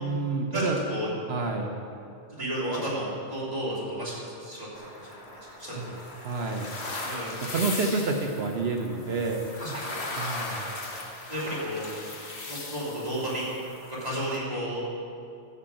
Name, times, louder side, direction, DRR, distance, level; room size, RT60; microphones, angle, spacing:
voice 1, 0.0-0.8 1.3-1.7 2.4-2.5 5.7-5.9 6.2-6.7 7.4-9.4 10.2-10.7, right 3 dB, 60° right, 2 dB, 1.1 m, -29 dB
voice 2, 0.5-1.1 2.4-4.7 5.1-5.2 5.6-6.0 7.0-7.4 9.6-10.0 11.3-11.9 12.5-13.6 13.9-14.8, equal, 35° right, -8 dB, 3.2 m, -32 dB
sound 1, 4.7-14.4, left 2 dB, 65° left, 1.6 m, -38 dB
14.0 x 5.6 x 7.5 m, 2.5 s
omnidirectional pair, 1.2 m